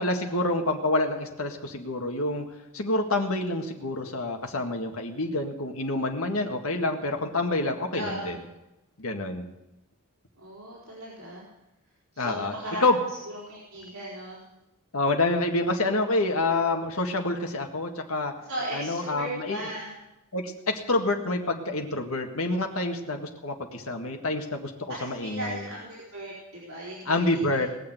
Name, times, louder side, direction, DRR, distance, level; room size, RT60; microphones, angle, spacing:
voice 1, 0.0-2.5 2.7-8.4 9.0-9.4 12.2-12.5 12.8-13.0 14.9-18.3 18.7-19.6 20.3-25.6 27.1-27.7, left 2 dB, 80° left, 4 dB, 1.8 m, -27 dB
voice 2, 7.9-8.4 10.4-11.5 12.1-12.8 13.3-14.4 18.5-20.0 24.9-27.6, right 1 dB, 75° right, -7 dB, 4.1 m, -37 dB
20.0 x 6.8 x 8.0 m, 0.97 s
head